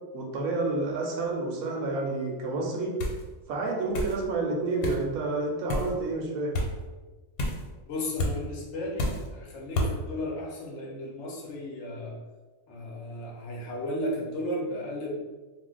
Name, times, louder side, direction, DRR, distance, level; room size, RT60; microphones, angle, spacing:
voice 1, 0.1-3.0 3.5-6.5, right 3 dB, 80° right, 0 dB, 1.0 m, -29 dB
sound 1, 3.0-3.2 3.9-4.2 4.8-5.0 5.7-5.9 6.5-6.7 7.4-7.6 8.2-8.4 9.0-9.3 9.7-9.9, left 1 dB, 90° left, 1.1 m, -29 dB
voice 2, 7.9-12.2 12.7-15.2, left 1 dB, 65° left, -2 dB, 0.9 m, -34 dB
2.5 x 2.1 x 3.8 m, 1.2 s
omnidirectional pair, 1.5 m